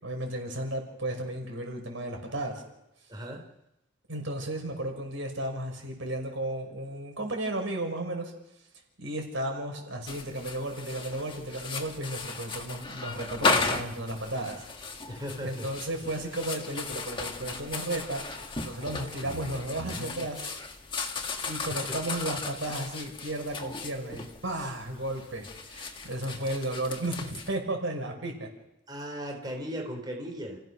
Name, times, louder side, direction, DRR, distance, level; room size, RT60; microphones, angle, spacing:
voice 1, 0.0-2.6 4.1-8.3 9.0-14.6 15.4-20.6 21.4-28.5, right 1 dB, 90° right, 3 dB, 5.7 m, -34 dB
voice 2, 3.1-3.4 15.1-15.7 21.7-21.8 24.6-24.7 28.9-30.6, equal, 20° right, 1 dB, 3.6 m, -37 dB
sound 1, 10.1-27.5, left 4 dB, 25° left, 1.6 m, -35 dB
30.0 x 16.0 x 6.3 m, 0.90 s
head